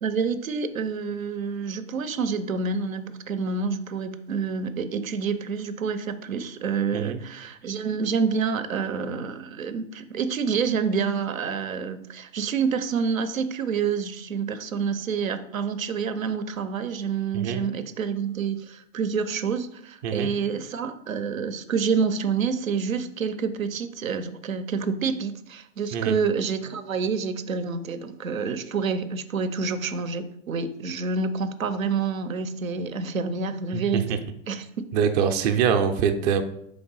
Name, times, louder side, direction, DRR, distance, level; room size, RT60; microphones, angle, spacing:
voice 1, 0.0-34.2 34.5-34.7, right 5 dB, 90° right, 10 dB, 0.6 m, -28 dB
voice 2, 34.9-36.4, right 7 dB, 35° right, 7 dB, 0.4 m, -24 dB
3.9 x 3.4 x 3.8 m, 0.73 s
hypercardioid pair, 110°, 39 cm